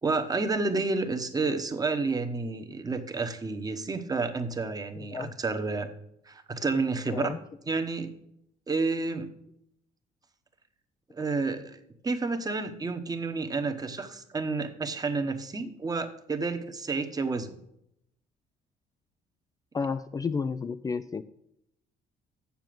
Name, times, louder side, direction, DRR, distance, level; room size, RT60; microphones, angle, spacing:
voice 1, 0.0-5.9 6.3-7.3 7.7-8.1 8.7-9.3 11.1-11.8 12.0-17.6, right 3 dB, 20° right, 8 dB, 1.2 m, -30 dB
voice 2, 7.1-7.4 19.7-21.2, left 5 dB, 20° left, 10 dB, 0.4 m, -31 dB
7.4 x 7.0 x 7.7 m, 0.77 s
cardioid pair, 110°, 17 cm